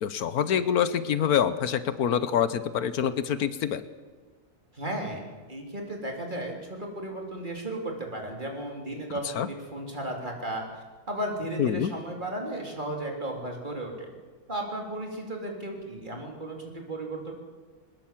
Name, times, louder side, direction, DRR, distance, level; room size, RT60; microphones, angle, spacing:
voice 1, 0.0-3.8 9.4-9.5 11.6-11.9, left 8 dB, 75° left, 13 dB, 1.4 m, -26 dB
voice 2, 4.7-14.1 14.5-17.3, right 1 dB, 30° right, 1 dB, 3.6 m, -35 dB
22.0 x 20.0 x 7.5 m, 1.5 s
omnidirectional pair, 1.6 m